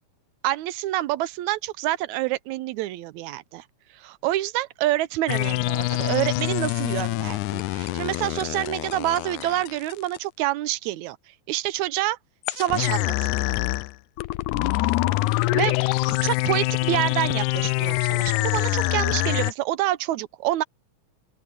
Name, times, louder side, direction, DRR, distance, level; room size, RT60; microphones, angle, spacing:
voice 1, 0.4-3.6 3.9-11.2 11.5-12.2 12.5-13.5 15.5-15.8 16.1-20.6, right 15 dB, 80° right, 1.9 m, -27 dB
sound 1, 5.3-10.2 12.5-19.5, left 20 dB, 85° left, 2.0 m, -25 dB
open air
omnidirectional pair, 3.4 m